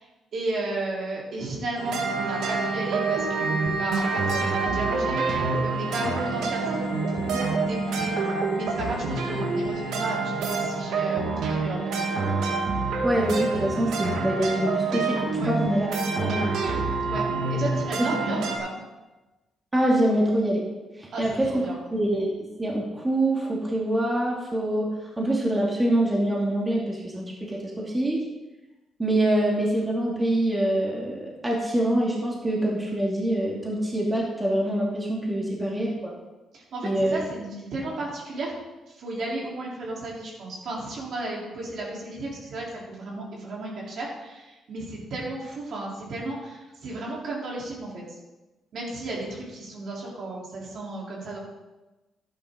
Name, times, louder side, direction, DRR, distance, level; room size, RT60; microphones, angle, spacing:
voice 1, 0.3-12.1 15.4-15.5 17.1-18.7 21.1-21.8 35.2-35.3 36.5-38.5 38.9-48.0 48.7-51.4, right 2 dB, 65° right, -4 dB, 3.7 m, -34 dB
sound 1, 1.8-18.6, right 3 dB, 80° right, 1.7 m, -27 dB
voice 2, 13.0-15.9 16.2-16.5 18.0-18.3 19.7-20.6 21.0-21.6 21.9-22.3 22.6-28.2 29.0-36.1 36.8-37.3, right 1 dB, 15° right, -3 dB, 2.6 m, -25 dB
11.5 x 10.0 x 3.9 m, 1.1 s
cardioid pair, 90°, 0 cm